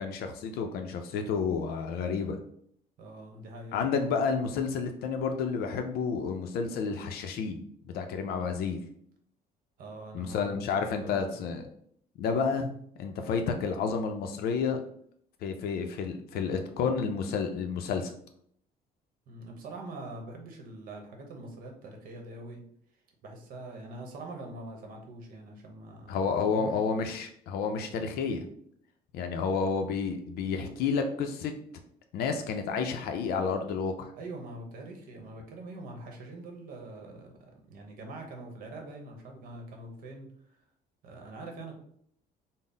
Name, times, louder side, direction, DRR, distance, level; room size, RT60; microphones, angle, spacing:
voice 1, 0.0-2.4 3.7-7.6 7.9-8.8 10.1-11.7 12.2-14.8 15.4-18.1 26.1-28.4 29.1-31.5 32.1-34.1, left 5 dB, 70° left, 5 dB, 0.4 m, -30 dB
voice 2, 3.0-3.8 9.8-11.4 19.3-22.6 23.2-26.7 34.2-40.3 41.0-41.8, right 2 dB, 60° right, 2 dB, 0.9 m, -44 dB
3.9 x 2.0 x 3.8 m, 0.65 s
cardioid pair, 155°, 17 cm